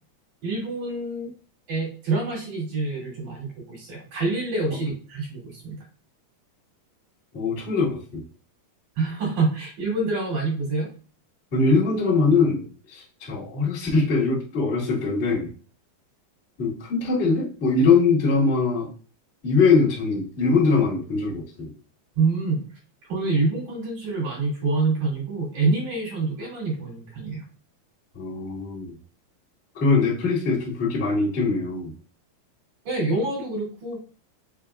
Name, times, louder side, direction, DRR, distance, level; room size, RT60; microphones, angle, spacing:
voice 1, 0.4-1.3 1.7-5.8 9.0-10.9 22.1-22.6 23.1-27.4 32.8-34.0, right 3 dB, 50° right, -4 dB, 3.4 m, -26 dB
voice 2, 7.3-8.2 11.5-15.5 16.6-18.9 19.4-21.7 28.1-28.9 29.7-31.9, left 4 dB, 85° left, -8 dB, 0.6 m, -22 dB
6.4 x 3.5 x 2.3 m, 0.40 s
omnidirectional pair, 4.8 m